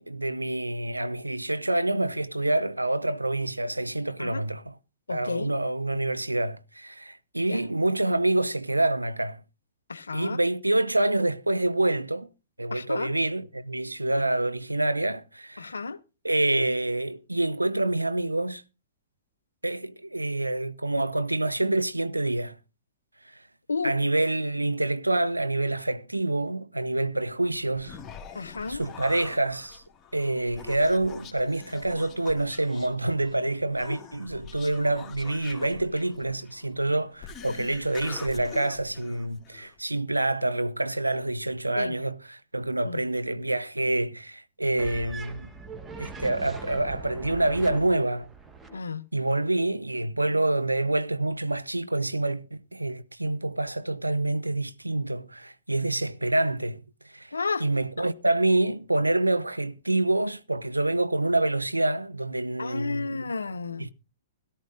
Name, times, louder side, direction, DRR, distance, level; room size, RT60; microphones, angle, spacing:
voice 1, 0.0-4.7 5.1-9.4 10.1-12.3 12.6-15.7 16.2-18.6 19.6-22.6 23.8-28.0 28.7-29.8 30.1-45.5 46.0-48.3 49.1-56.8 57.1-57.3 57.6-63.3 63.8-63.9, right 2 dB, 85° right, 0.6 m, -27 dB
voice 2, 5.1-5.6 7.5-7.7 9.9-10.4 12.7-13.2 15.6-16.0 23.7-24.0 28.3-28.8 33.9-34.0 37.4-37.5 41.8-42.0 42.8-43.0 48.7-49.1 57.3-57.7 62.6-63.9, left 4 dB, 75° left, 0.6 m, -32 dB
Human voice, 27.5-39.8, left 7 dB, 20° left, 2.1 m, -45 dB
sound 1, 44.8-48.8, right 3 dB, 15° right, 1.3 m, -41 dB
17.0 x 12.5 x 2.6 m
figure-of-eight pair, 110°, 0 cm